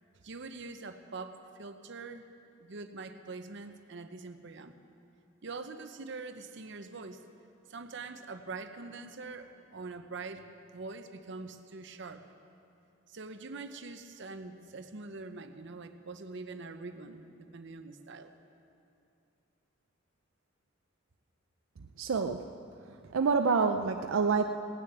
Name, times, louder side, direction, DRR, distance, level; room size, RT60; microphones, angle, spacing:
voice 1, 0.2-2.2 2.6-4.7 5.4-7.2 7.7-10.5 10.7-12.2 13.1-18.3, right 3 dB, 65° right, 8 dB, 0.8 m, -44 dB
voice 2, 22.0-22.5 23.1-24.4, right 5 dB, 85° right, 6 dB, 0.5 m, -27 dB
17.5 x 6.6 x 9.2 m, 2.6 s
head